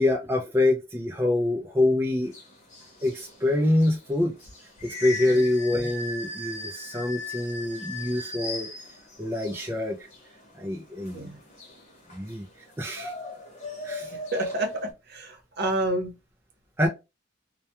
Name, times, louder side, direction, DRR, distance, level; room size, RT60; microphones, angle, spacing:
voice 1, 0.0-2.3 3.0-4.3 4.8-8.7 9.2-10.1 10.6-11.3 12.1-12.4 12.8-13.1 13.8-14.1 16.8-16.9, left 1 dB, 10° right, 0.3 m, -25 dB
sound 1, 2.2-14.9, left 2 dB, 40° left, 0.9 m, -38 dB
voice 2, 14.3-16.1 16.8-16.9, right 1 dB, 60° right, 0.8 m, -29 dB
2.2 x 2.2 x 2.8 m
head